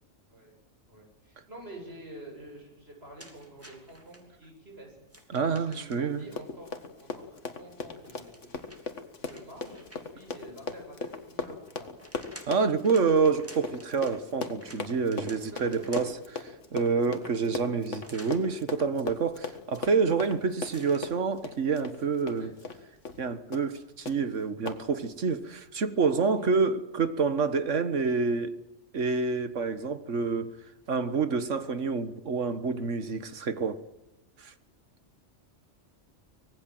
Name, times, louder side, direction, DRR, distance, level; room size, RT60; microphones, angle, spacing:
voice 1, 0.9-4.9 5.5-8.9 9.3-11.9 15.2-16.0 17.0-17.7 22.3-22.5 26.2-26.5, right 1 dB, 55° right, 8.4 m, -48 dB
sound 1, 3.2-4.2 5.1-6.2 8.0-10.3 11.7-16.3 18.0-18.4 20.6-21.1, equal, 10° right, 3.1 m, -51 dB
voice 2, 5.3-6.2 12.5-16.1 16.4-22.5 23.2-28.6 28.9-30.5 30.9-33.8 34.4-34.5, right 5 dB, 80° right, 1.8 m, -28 dB
Run, 6.2-22.8 23.1-23.2 23.5-23.8 24.1-24.2 24.7-24.8, left 4 dB, 80° left, 2.2 m, -38 dB
25.0 x 19.5 x 7.8 m
omnidirectional pair, 1.2 m